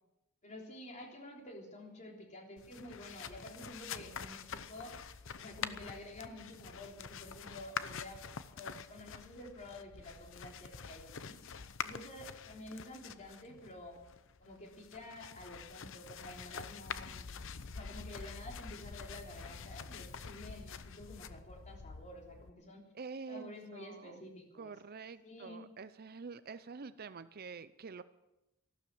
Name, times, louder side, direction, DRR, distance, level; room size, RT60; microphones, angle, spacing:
voice 1, 0.4-5.0 5.3-8.2 8.5-11.4 11.8-14.0 14.4-17.3 17.7-22.8 23.3-24.7 25.2-25.7, left 1 dB, 35° left, 1 dB, 3.5 m, -50 dB
sound 1, 2.6-22.5, left 6 dB, 65° left, 0.8 m, -46 dB
voice 2, 4.0-4.7 22.9-24.2 24.6-28.0, right 5 dB, 45° right, 14 dB, 0.6 m, -48 dB
15.0 x 12.5 x 7.7 m, 0.94 s
head